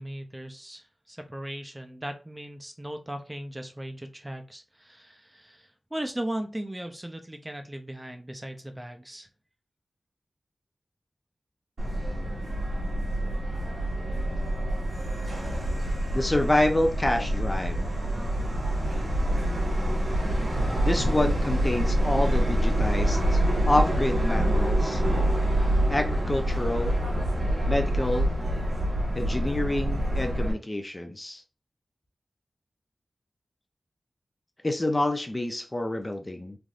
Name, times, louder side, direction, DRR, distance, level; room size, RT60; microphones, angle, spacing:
voice 1, 0.0-9.3, right 1 dB, 20° right, 6 dB, 0.6 m, -37 dB
Subway metro underground, 11.8-30.5, right 1 dB, 80° right, 1.3 m, -26 dB
voice 2, 16.1-17.9 20.8-25.0 25.9-27.0 27.7-28.3 29.2-31.4 34.6-36.6, left 1 dB, 30° left, 5 dB, 0.5 m, -27 dB
3.3 x 2.6 x 2.4 m, 0.32 s
cardioid pair, 45°, 0 cm